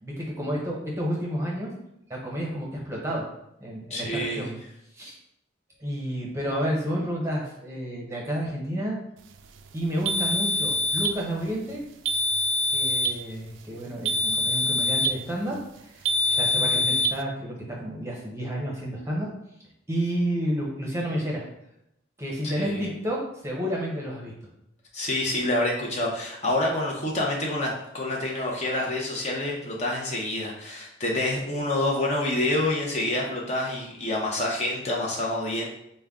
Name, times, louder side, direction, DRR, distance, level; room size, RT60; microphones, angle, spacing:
voice 1, 0.0-1.7 2.1-3.2 3.6-4.5 4.9-5.2 5.8-9.0 9.7-11.8 12.7-19.3 19.9-21.5 22.2-24.3, equal, 15° right, -3 dB, 0.7 m, -30 dB
voice 2, 3.9-4.5 16.6-16.7 22.4-22.9 24.9-35.7, left 1 dB, 35° left, -2 dB, 0.7 m, -27 dB
sound 1, 10.0-11.2 12.0-13.2 14.0-15.2 16.0-17.2, left 2 dB, 85° right, 0.3 m, -24 dB
5.0 x 2.2 x 3.5 m, 0.81 s
head